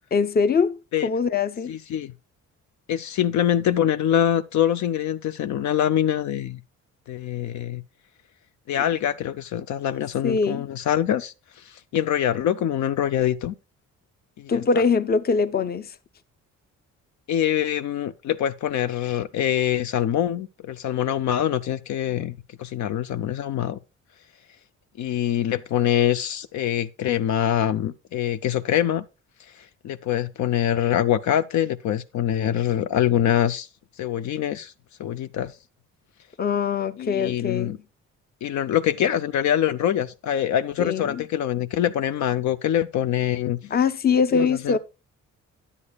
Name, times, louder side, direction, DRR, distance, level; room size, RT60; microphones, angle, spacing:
voice 1, 0.1-1.7 10.2-10.7 14.5-15.9 36.4-37.8 40.8-41.2 43.7-44.8, left 5 dB, 30° left, 0.6 m, -22 dB
voice 2, 1.7-2.1 2.9-6.6 7.1-7.8 8.7-11.3 11.9-13.5 14.4-14.6 17.3-22.3 22.6-23.8 25.0-29.0 29.8-33.7 34.0-34.7 35.0-35.5 37.0-37.7 38.4-43.6 44.3-44.8, left 10 dB, 70° left, 0.6 m, -24 dB
9.8 x 8.3 x 2.3 m
cardioid pair, 90°, 30 cm